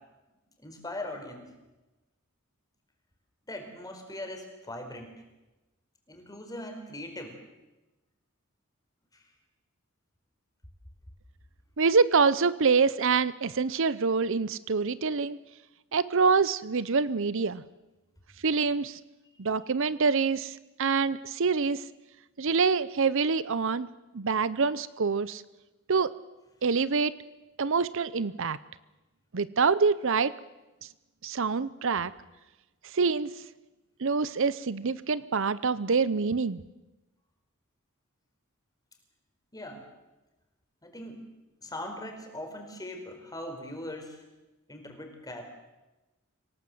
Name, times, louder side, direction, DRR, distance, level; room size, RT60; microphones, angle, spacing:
voice 1, 0.6-1.4 3.5-5.1 6.1-7.3 9.1-9.2 39.5-39.9 40.8-41.2 41.6-44.2 44.7-45.4, left 1 dB, 20° left, 4 dB, 4.5 m, -40 dB
voice 2, 11.8-15.4 15.9-17.6 18.4-19.0 19.4-21.8 22.4-23.9 24.1-25.4 25.9-26.1 26.6-27.1 27.6-28.6 29.3-30.3 31.2-32.1 32.9-33.3 34.0-36.6, right 5 dB, 65° right, 17 dB, 0.7 m, -26 dB
26.5 x 18.0 x 7.9 m, 1.1 s
head